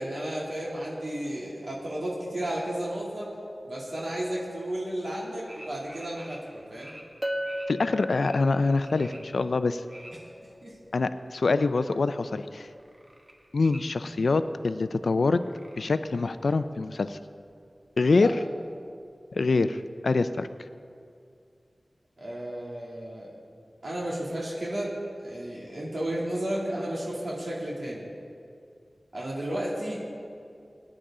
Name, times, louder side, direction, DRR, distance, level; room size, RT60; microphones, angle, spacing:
voice 1, 0.0-3.3 3.6-6.9 10.2-10.3 10.6-10.8 18.2-18.3 22.2-23.3 23.8-28.0 29.1-30.0, right 1 dB, 70° right, -5 dB, 2.6 m, -33 dB
sound 1, 5.5-7.0 7.4-7.7 8.1-10.1 10.5-11.6 11.9-12.3 12.6-13.8 14.3-14.4 14.6-14.7 15.0-16.3 16.6-16.7 16.9-17.0 17.7-17.8 18.2-18.3 18.7-18.8, right 1 dB, 45° right, 1.7 m, -49 dB
Chink clink, 7.2-11.5, equal, 20° right, 1.0 m, -37 dB
voice 2, 7.7-9.8 10.9-12.7 13.5-15.4 15.8-17.2 18.0-18.4 19.3-20.5, left 3 dB, 90° left, 11 dB, 0.4 m, -25 dB
18.5 x 10.0 x 3.8 m, 2.4 s
wide cardioid pair, 60°, 0 cm